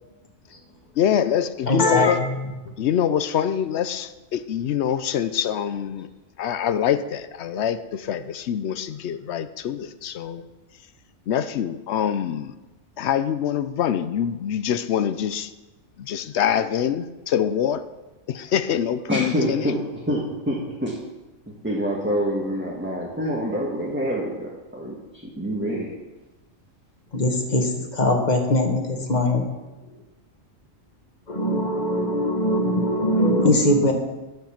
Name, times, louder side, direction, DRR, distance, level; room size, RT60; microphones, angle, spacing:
voice 1, 1.0-2.2 2.8-6.1 6.4-10.4 11.3-12.5 13.0-15.5 16.0-17.8 18.3-19.7, left 9 dB, 65° left, 13 dB, 0.8 m, -25 dB
voice 2, 1.7-2.4 27.1-29.5 31.3-33.9, left 1 dB, 35° left, 3 dB, 1.4 m, -21 dB
voice 3, 19.1-19.8 20.1-20.9 21.6-24.9 25.2-25.9, equal, 10° right, -4 dB, 1.3 m, -26 dB
13.5 x 5.4 x 5.8 m, 1.1 s
omnidirectional pair, 1.4 m